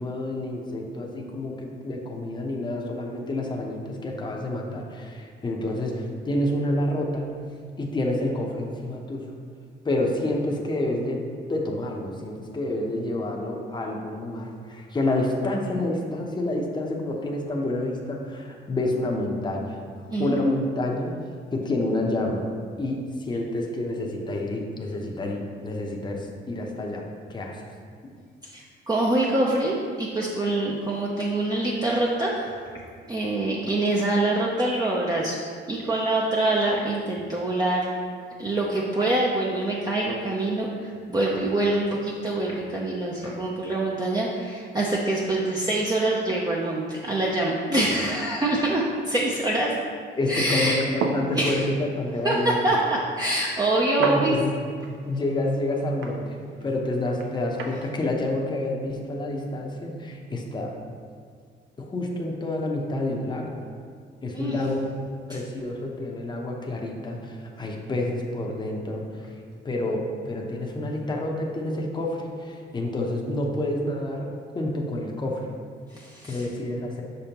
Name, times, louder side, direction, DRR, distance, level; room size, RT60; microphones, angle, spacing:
voice 1, 0.0-7.3 7.8-9.3 9.8-11.2 11.5-19.8 20.2-21.1 21.5-22.4 22.8-27.0 27.3-27.6 50.2-52.6 54.0-54.5 55.0-60.7 61.8-63.6 64.2-64.9 65.3-74.3 74.5-75.5 76.3-77.0, left 1 dB, 20° left, 0 dB, 0.8 m, -28 dB
voice 2, 20.1-20.4 28.4-32.5 33.1-35.4 35.7-37.9 38.4-49.7 50.3-50.8 51.4-51.6 52.2-54.4 64.3-64.6 65.3-65.4 75.9-76.4, right 2 dB, 20° right, -4 dB, 0.6 m, -25 dB
sound 1, 50.6-57.8, right 3 dB, 80° right, 0.6 m, -35 dB
6.1 x 5.3 x 2.9 m, 2.1 s
cardioid pair, 90°, 20 cm